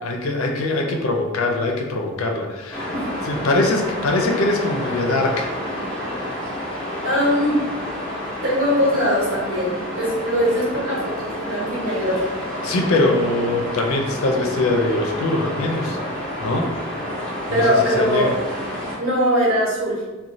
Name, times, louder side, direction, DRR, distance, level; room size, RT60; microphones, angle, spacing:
voice 1, 0.0-2.9 3.3-5.5 12.6-16.0 16.4-16.7 17.5-18.4, left 2 dB, 80° left, 2 dB, 0.5 m, -22 dB
sound 1, 2.7-19.0, equal, 5° left, 0.6 m, -29 dB
voice 2, 7.0-7.6 8.4-12.2 17.5-18.3 19.0-20.0, equal, 70° right, -7 dB, 1.2 m, -21 dB
3.0 x 2.2 x 2.6 m, 1.2 s
head